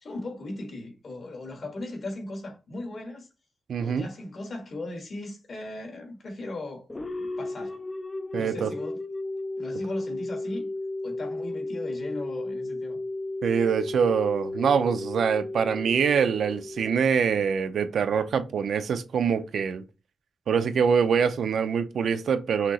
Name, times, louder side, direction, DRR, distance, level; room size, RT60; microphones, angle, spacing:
voice 1, 0.0-3.3 3.8-6.9 7.2-7.8 8.4-9.0 9.6-10.7 11.0-13.0, left 2 dB, 50° left, 1.5 m, -37 dB
voice 2, 3.7-4.1 8.3-8.7 13.4-19.8 20.5-22.7, right 6 dB, 80° right, 0.5 m, -24 dB
sound 1, 6.9-17.6, left 2 dB, 20° left, 0.4 m, -34 dB
5.8 x 2.9 x 2.9 m
wide cardioid pair, 175°, 0 cm